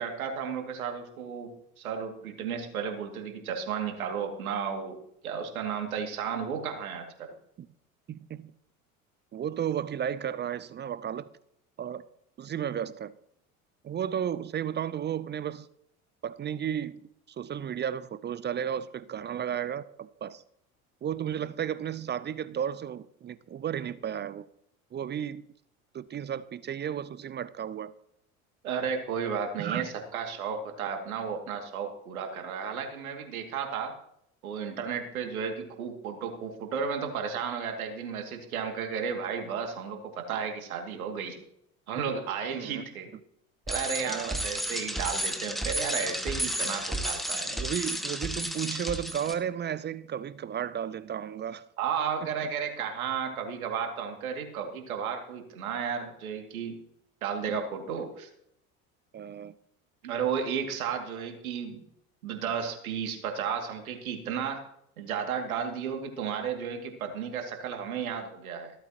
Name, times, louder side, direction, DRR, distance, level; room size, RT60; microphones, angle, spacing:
voice 1, 0.0-5.0 5.2-7.3 28.6-33.9 34.4-41.4 41.9-43.1 43.7-47.6 51.8-56.7 57.2-58.3 60.0-61.8 62.2-64.6 65.0-68.7, right 7 dB, 75° right, 2.5 m, -33 dB
voice 2, 8.1-8.5 9.3-11.3 11.8-12.0 12.4-13.1 13.8-15.7 16.2-17.0 17.3-20.4 21.0-24.5 24.9-25.5 25.9-27.9 29.6-29.9 42.5-42.8 44.0-44.4 47.5-51.7 59.1-59.5, right 9 dB, 25° right, 0.6 m, -33 dB
Bicycle, 43.7-49.3, equal, ahead, 1.7 m, -32 dB
16.0 x 13.5 x 2.9 m
figure-of-eight pair, 65°, 43 cm